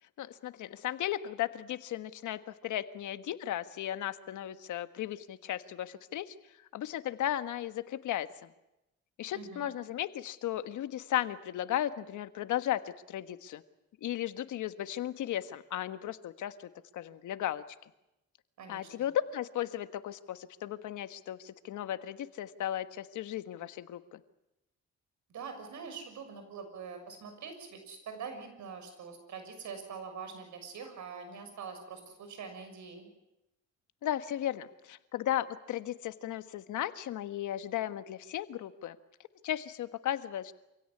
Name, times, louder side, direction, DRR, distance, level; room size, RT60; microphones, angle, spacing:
voice 1, 0.2-8.5 9.2-13.6 14.0-17.9 18.7-24.2 34.0-39.0 39.4-40.5, left 12 dB, 75° left, 11 dB, 1.4 m, -35 dB
voice 2, 9.3-9.7 18.6-19.1 25.3-33.1, right 5 dB, 70° right, 7 dB, 6.5 m, -44 dB
26.5 x 16.5 x 9.8 m, 0.93 s
cardioid pair, 90°, 30 cm